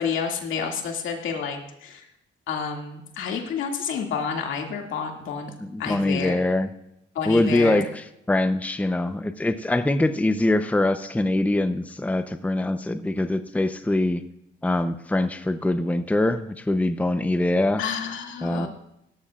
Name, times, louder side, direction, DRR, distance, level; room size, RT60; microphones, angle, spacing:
voice 1, 0.0-2.1 2.5-5.5 5.8-6.4 7.1-7.8 17.8-18.7, left 6 dB, 80° left, 2 dB, 2.3 m, -29 dB
voice 2, 5.6-6.7 7.3-14.2 14.6-17.8 18.4-18.7, left 2 dB, 5° left, 10 dB, 0.7 m, -23 dB
18.0 x 13.0 x 2.4 m, 0.82 s
cardioid pair, 90°, 20 cm